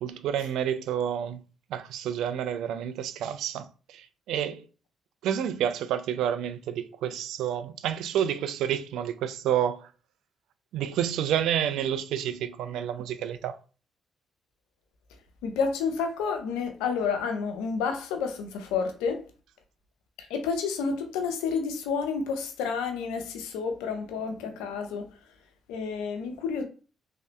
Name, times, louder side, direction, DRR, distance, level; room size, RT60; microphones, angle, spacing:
voice 1, 0.0-1.4 1.7-4.6 5.2-9.9 10.7-13.6, right 9 dB, 80° right, 0.3 m, -29 dB
voice 2, 15.4-19.2 20.2-25.1 25.7-26.6, left 5 dB, 85° left, 0.6 m, -30 dB
3.3 x 2.7 x 3.2 m
supercardioid pair, 55°, 0 cm